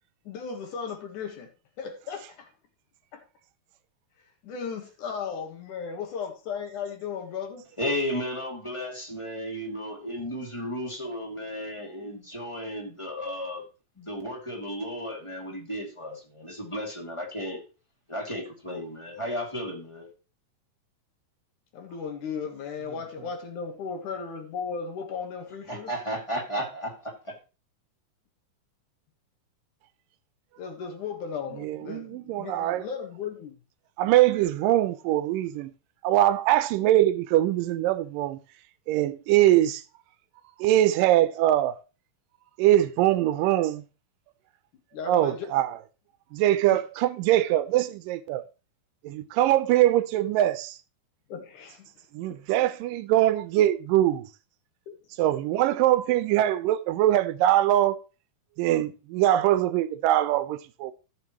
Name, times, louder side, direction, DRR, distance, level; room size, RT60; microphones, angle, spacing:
voice 1, 0.3-1.5 1.8-2.5 3.1-3.2 4.4-7.6 21.7-25.9 30.6-33.5 44.9-45.5 46.7-46.8 51.3-51.9 52.3-52.4 54.9-55.0, left 6 dB, 65° left, 2.8 m, -36 dB
voice 2, 7.8-13.6 14.0-17.6 18.1-20.1 25.7-27.3, equal, 10° left, 2.0 m, -34 dB
voice 3, 31.6-32.9 34.0-35.7 36.0-38.4 38.9-39.8 40.6-41.8 42.6-43.8 45.1-45.8 46.3-48.4 49.0-50.8 52.1-54.3 55.2-58.0 58.6-60.9, right 13 dB, 80° right, 2.2 m, -22 dB
14.5 x 6.8 x 3.1 m
omnidirectional pair, 4.0 m